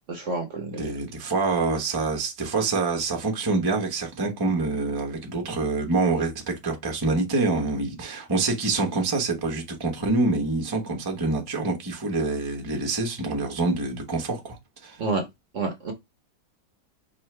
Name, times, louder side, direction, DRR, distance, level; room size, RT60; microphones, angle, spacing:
voice 1, 0.1-0.9 15.0-15.2 15.5-15.9, right 3 dB, 50° right, 1.1 m, -29 dB
voice 2, 0.8-15.0, right 3 dB, 20° right, 0.8 m, -26 dB
5.4 x 2.5 x 3.2 m
omnidirectional pair, 1.9 m